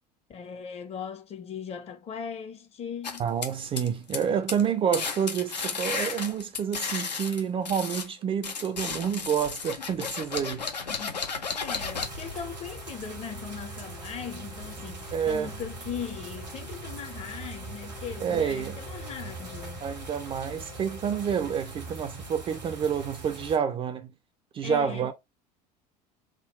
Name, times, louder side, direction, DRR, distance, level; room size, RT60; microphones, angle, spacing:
voice 1, 0.3-3.2 10.9-19.9 24.6-25.1, left 7 dB, 30° left, 0.7 m, -39 dB
sound 1, 3.0-4.2 4.5-4.7 4.9-8.1 8.4-12.4, left 5 dB, 80° left, 0.7 m, -33 dB
voice 2, 3.2-10.7 15.1-15.5 18.2-18.8 19.8-24.1 24.5-25.1, right 8 dB, 25° right, 0.4 m, -28 dB
sound 2, 11.7-21.6, left 7 dB, 55° left, 1.1 m, -52 dB
sound 3, 11.8-23.6, right 2 dB, 85° right, 1.2 m, -41 dB
3.6 x 2.2 x 4.2 m
figure-of-eight pair, 70°, 21 cm